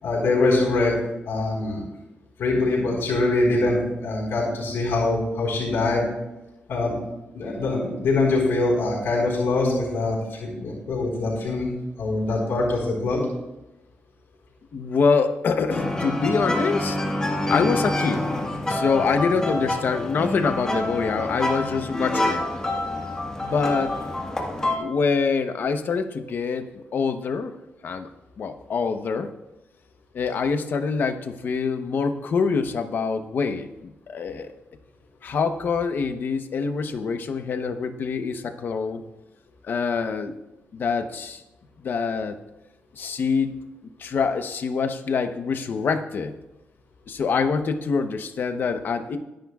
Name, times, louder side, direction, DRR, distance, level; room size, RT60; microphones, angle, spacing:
voice 1, 0.0-0.9 1.3-1.8 2.4-6.0 6.7-6.9 7.3-11.7 12.0-13.2, left 2 dB, 85° left, -3 dB, 4.5 m, -23 dB
voice 2, 14.7-17.0 17.5-18.3 18.7-22.5 23.4-24.0 24.7-27.5 27.8-28.1 28.4-29.3 30.1-34.5 35.2-39.0 39.6-40.4 40.7-41.4 41.8-42.4 43.0-43.5 44.0-46.3 47.1-49.2, left 5 dB, 55° left, 8 dB, 0.9 m, -25 dB
sound 1, 15.7-24.8, left 1 dB, 15° left, 1.6 m, -27 dB
23.0 x 10.5 x 2.4 m, 0.99 s
wide cardioid pair, 150°, 4 cm